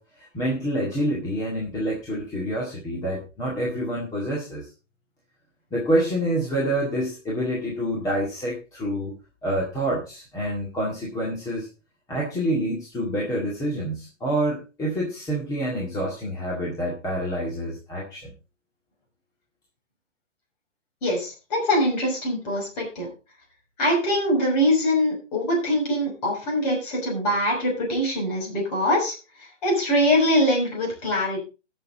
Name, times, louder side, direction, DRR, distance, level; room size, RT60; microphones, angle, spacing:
voice 1, 0.0-4.7 5.7-9.1 9.4-11.7 12.1-18.3, right 1 dB, 10° left, -4 dB, 2.0 m, -27 dB
voice 2, 21.0-23.1 23.8-29.1 29.6-31.4, equal, 30° left, 0 dB, 6.0 m, -23 dB
17.0 x 6.8 x 4.0 m, 0.31 s
hypercardioid pair, 165°, 36 cm